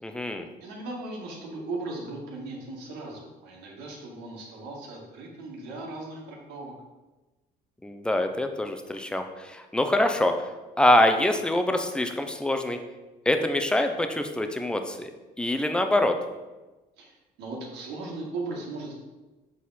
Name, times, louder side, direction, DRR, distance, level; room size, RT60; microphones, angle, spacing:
voice 1, 0.0-0.5 7.8-10.3 10.8-12.8 13.3-15.1 15.4-16.2, left 1 dB, 5° left, 6 dB, 0.6 m, -24 dB
voice 2, 0.6-6.7 17.0-18.9, right 2 dB, 85° right, -2 dB, 1.9 m, -37 dB
7.3 x 4.2 x 4.2 m, 1.1 s
cardioid pair, 110°, 17 cm